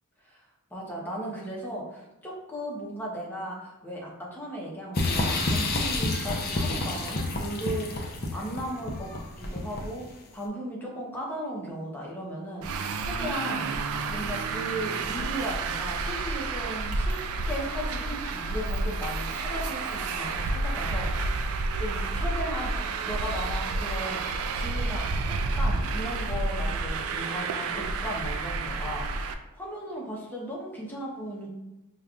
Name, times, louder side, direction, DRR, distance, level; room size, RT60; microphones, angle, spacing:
voice 1, 0.7-13.7 14.1-24.2 24.5-31.5, equal, 10° left, -4 dB, 0.7 m, -36 dB
sound 1, 4.9-10.1, left 2 dB, 45° left, 0.5 m, -29 dB
Traffic noise roadway noise, 12.6-29.3, right 3 dB, 70° right, 0.3 m, -30 dB
5.1 x 2.3 x 2.3 m, 0.99 s
head